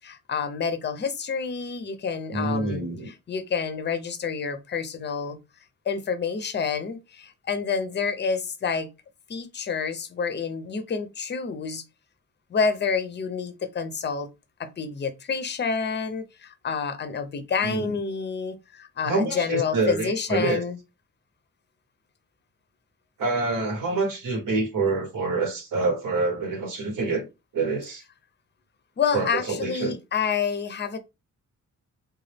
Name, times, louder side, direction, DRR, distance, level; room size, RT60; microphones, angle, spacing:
voice 1, 0.0-2.8 3.3-5.4 5.9-8.9 9.3-11.8 12.5-14.3 14.6-20.8 29.0-31.0, left 5 dB, 35° left, 0.5 m, -28 dB
voice 2, 2.3-3.1 17.6-17.9 19.0-20.6 23.2-27.2 27.5-28.0 29.1-30.0, right 3 dB, 85° right, 1.2 m, -26 dB
3.8 x 2.3 x 3.3 m
wide cardioid pair, 180°, 32 cm